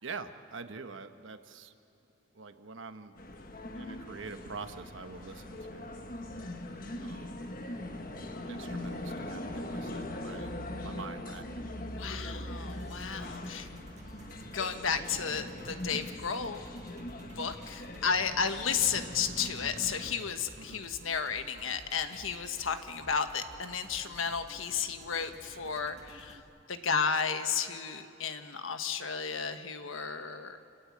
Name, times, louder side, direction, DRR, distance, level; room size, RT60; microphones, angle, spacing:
voice 1, 0.0-1.7 2.3-3.2 3.7-6.1 7.0-7.5 8.5-11.7 20.6-20.8, right 4 dB, 75° right, 8 dB, 1.2 m, -45 dB
sound 1, 3.2-20.1, left 1 dB, 45° left, 1.4 m, -41 dB
voice 2, 11.9-13.7 14.5-16.7 17.4-26.4 26.7-30.6, left 6 dB, 85° left, 8 dB, 1.3 m, -33 dB
sound 2, 12.7-26.4, right 1 dB, 35° right, 1.9 m, -53 dB
28.5 x 17.0 x 8.6 m, 2.8 s
head